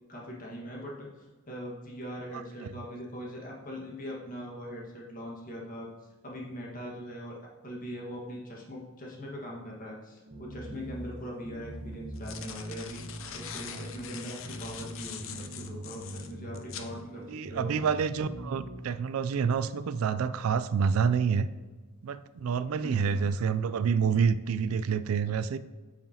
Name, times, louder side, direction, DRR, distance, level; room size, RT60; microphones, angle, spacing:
voice 1, 0.1-5.9 6.2-7.4 7.6-13.0 13.3-17.8 22.8-23.3, equal, 40° left, -2 dB, 1.6 m, -41 dB
sound 1, 10.2-18.8, right 1 dB, 40° right, 1.2 m, -43 dB
sound 2, 10.9-11.0 11.9-16.9, left 8 dB, 65° left, 0.6 m, -43 dB
voice 2, 17.3-21.5 22.0-25.6, right 6 dB, 85° right, 14 dB, 0.4 m, -28 dB
8.6 x 5.8 x 2.8 m, 1.3 s
head